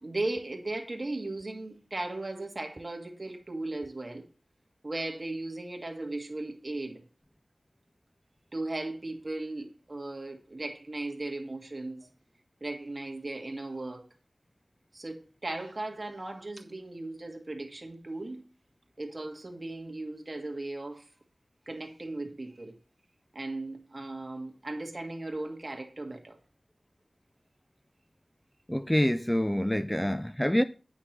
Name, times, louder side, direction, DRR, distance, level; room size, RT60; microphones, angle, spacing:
voice 1, 0.0-4.3 4.8-7.0 8.5-12.1 12.6-14.0 14.9-18.4 19.0-21.1 21.7-22.8 23.3-26.4, right 2 dB, 35° right, 1.7 m, -37 dB
voice 2, 28.7-30.6, equal, 5° left, 0.3 m, -26 dB
9.7 x 5.8 x 4.5 m
wide cardioid pair, 90°, 0 cm